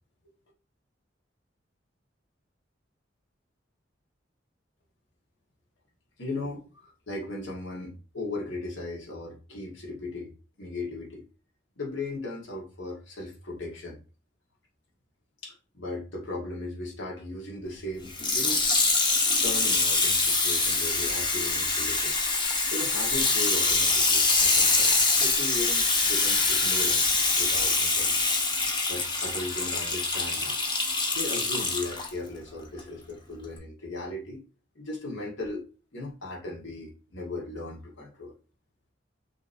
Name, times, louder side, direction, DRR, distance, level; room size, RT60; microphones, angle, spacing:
voice 1, 6.2-11.2 11.8-14.0 15.4-18.6 19.4-22.1 22.7-28.3 28.9-30.6 31.1-34.4 34.7-35.6 35.9-38.3, left 2 dB, 80° left, -2 dB, 1.5 m, -37 dB
Water tap faucet / Sink (filling or washing), 18.1-32.1 32.8-32.9, left 3 dB, 25° left, 0.9 m, -24 dB
5.8 x 3.0 x 2.6 m, 0.35 s
head